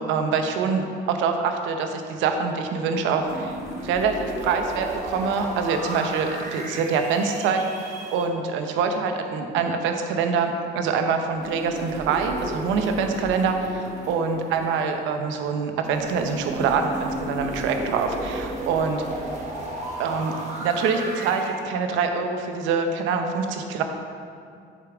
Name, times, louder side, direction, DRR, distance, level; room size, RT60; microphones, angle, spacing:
voice 1, 0.0-3.5 3.8-19.0 20.0-23.8, right 5 dB, 65° right, 5 dB, 0.8 m, -25 dB
sound 1, 3.2-8.2 11.4-15.1 15.8-21.6, right 1 dB, 35° right, 1.2 m, -34 dB
8.0 x 7.4 x 3.5 m, 2.4 s
cardioid pair, 160°, 21 cm